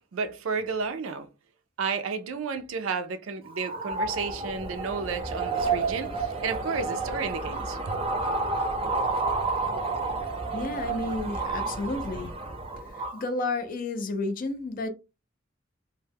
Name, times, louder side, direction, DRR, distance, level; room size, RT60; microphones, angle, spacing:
voice 1, 0.1-1.3 1.8-7.8, right 5 dB, 90° right, 0.4 m, -32 dB
sound 1, 3.5-13.2, right 3 dB, 30° right, 0.5 m, -30 dB
voice 2, 10.5-12.3 13.1-14.9, left 2 dB, 45° left, 0.4 m, -31 dB
2.2 x 2.1 x 3.3 m
head